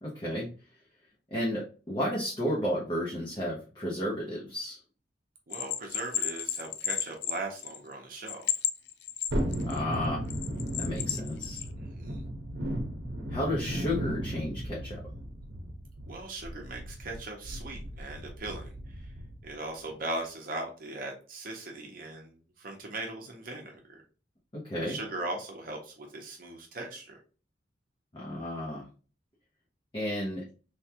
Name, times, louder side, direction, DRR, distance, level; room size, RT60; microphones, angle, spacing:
voice 1, 0.0-0.5 1.3-4.8 9.6-10.3 10.8-11.6 13.3-15.0 24.5-25.0 28.1-28.9 29.9-30.4, left 1 dB, 25° left, -5 dB, 0.7 m, -32 dB
Bell, 5.5-7.9 8.3-9.8 10.3-11.7, left 10 dB, 70° left, 0.4 m, -32 dB
voice 2, 5.5-8.5 11.8-12.2 16.1-18.7 19.4-24.0 24.8-27.1, right 2 dB, 55° right, 1 dB, 0.7 m, -39 dB
Thunderstorm, 9.3-19.5 19.9-20.0, equal, 90° right, 0.7 m, -35 dB
3.3 x 2.3 x 2.7 m, 0.36 s
head